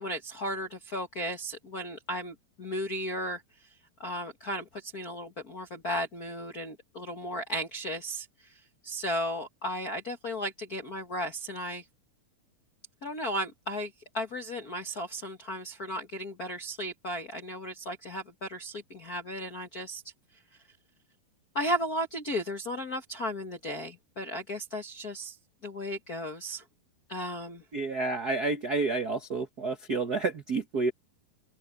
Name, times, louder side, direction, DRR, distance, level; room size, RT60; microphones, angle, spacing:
voice 1, 0.0-3.7 4.0-8.5 8.8-11.8 13.0-20.0 21.5-25.4 25.6-26.6 27.1-27.6, equal, 60° left, 0.9 m, -35 dB
voice 2, 27.7-30.9, right 3 dB, 75° right, 0.8 m, -29 dB
open air
omnidirectional pair, 4.4 m